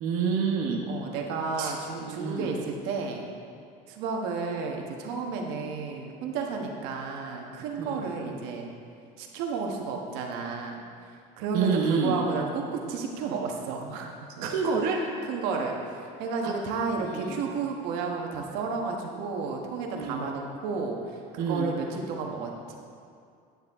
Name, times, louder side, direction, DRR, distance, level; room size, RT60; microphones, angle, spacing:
voice 1, 0.0-0.8 1.6-1.7 2.0-2.5 7.8-8.1 11.5-12.2 14.4-15.0 16.4-16.5 17.0-17.4 19.9-20.3 21.4-21.7, right 5 dB, 55° right, -2 dB, 1.0 m, -28 dB
voice 2, 0.9-3.3 3.9-8.7 9.2-10.8 11.4-14.5 15.2-22.8, right 4 dB, 85° right, 1 dB, 1.3 m, -32 dB
9.9 x 9.4 x 3.6 m, 2.3 s
cardioid pair, 175°, 17 cm